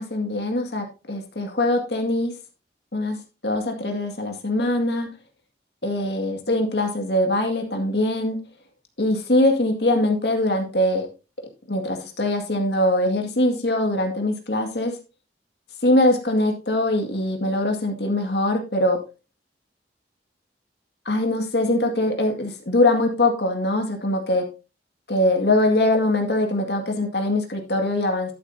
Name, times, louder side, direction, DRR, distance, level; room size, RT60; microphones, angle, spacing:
voice 1, 0.0-2.3 2.9-3.2 3.4-5.1 5.8-8.4 9.0-11.1 11.7-15.0 15.8-19.0 21.1-24.4 25.1-28.3, left 1 dB, 65° left, 4 dB, 2.0 m, -22 dB
12.5 x 8.0 x 2.7 m, 0.30 s
head